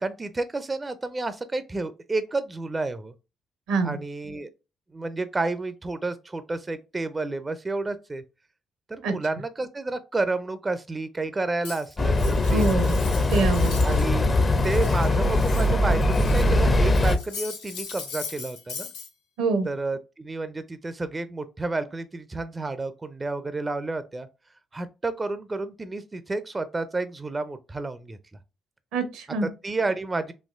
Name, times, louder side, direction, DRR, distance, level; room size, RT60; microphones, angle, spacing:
voice 1, 0.0-3.1 3.8-4.5 4.9-8.2 8.9-12.9 13.8-14.3 14.6-18.9 19.6-24.3 24.7-28.2 29.4-30.3, right 3 dB, 25° right, 0.4 m, -30 dB
voice 2, 3.7-4.0 9.0-9.1 12.5-12.9 13.3-14.0 19.4-19.7 28.9-29.5, right 3 dB, 75° right, 0.7 m, -25 dB
Cutlery silverware, 11.6-14.1 14.4-16.5 16.8-19.1, left 5 dB, 80° left, 0.8 m, -40 dB
sound 1, 12.0-17.2, left 2 dB, 35° left, 0.5 m, -21 dB
4.3 x 2.8 x 2.4 m
hypercardioid pair, 50°, 0 cm